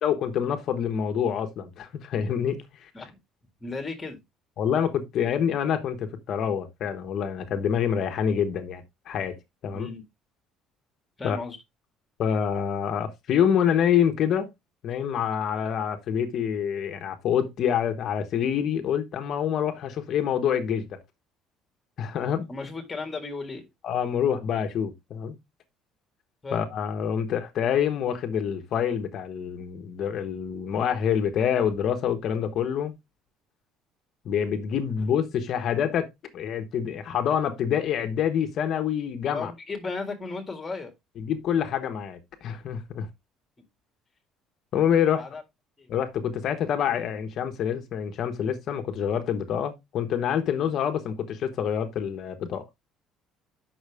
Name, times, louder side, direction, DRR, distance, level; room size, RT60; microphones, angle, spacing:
voice 1, 0.0-2.9 4.6-9.9 11.2-11.4 12.2-14.5 14.8-21.0 22.0-22.5 23.8-25.3 26.5-32.9 34.2-36.1 36.3-39.5 41.2-43.1 44.7-45.2 45.9-52.7, left 8 dB, 45° left, 1.0 m, -26 dB
voice 2, 3.6-4.2 9.7-10.0 11.2-11.6 22.5-23.7 26.4-26.6 39.3-40.9 45.1-45.4 45.8-45.9, left 3 dB, 15° left, 1.9 m, -35 dB
7.9 x 6.0 x 3.4 m
cardioid pair, 175°, 0 cm